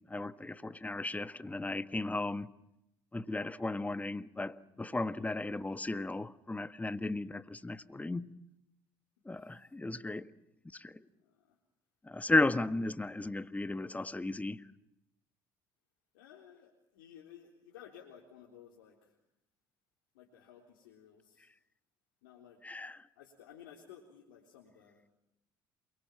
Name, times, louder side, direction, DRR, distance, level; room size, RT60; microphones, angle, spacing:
voice 1, 0.1-2.5 3.1-8.3 9.2-10.3 10.7-11.0 12.1-14.6 22.6-23.0, left 2 dB, 15° left, 1.5 m, -35 dB
voice 2, 9.3-9.7 11.2-11.6 12.6-12.7 16.1-19.2 20.1-21.5 22.2-25.1, left 9 dB, 80° left, 3.9 m, -56 dB
28.0 x 23.5 x 7.4 m
hypercardioid pair, 60°, 11 cm